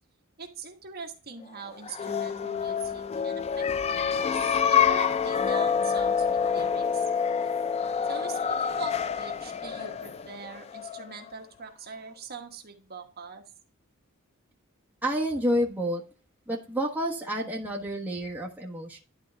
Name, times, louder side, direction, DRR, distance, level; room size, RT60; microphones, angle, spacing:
voice 1, 0.4-7.0 8.1-13.4, right 5 dB, 45° right, 2 dB, 1.4 m, -43 dB
sound 1, 1.8-11.3, left 7 dB, 30° left, 0.3 m, -27 dB
voice 2, 15.0-16.0 16.5-19.0, equal, 10° right, -2 dB, 1.2 m, -29 dB
11.0 x 3.8 x 3.5 m, 0.36 s
head